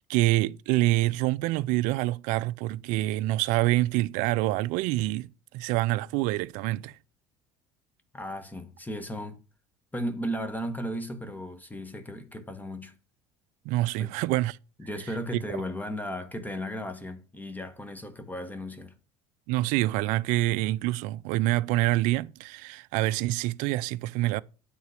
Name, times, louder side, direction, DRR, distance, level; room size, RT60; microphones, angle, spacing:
voice 1, 0.1-7.0 13.7-14.6 19.5-24.4, right 17 dB, 65° right, 0.4 m, -26 dB
voice 2, 8.1-9.4 9.9-12.9 14.0-14.1 14.8-18.9, equal, 10° left, 1.3 m, -35 dB
9.2 x 3.8 x 6.3 m
hypercardioid pair, 70°, 14 cm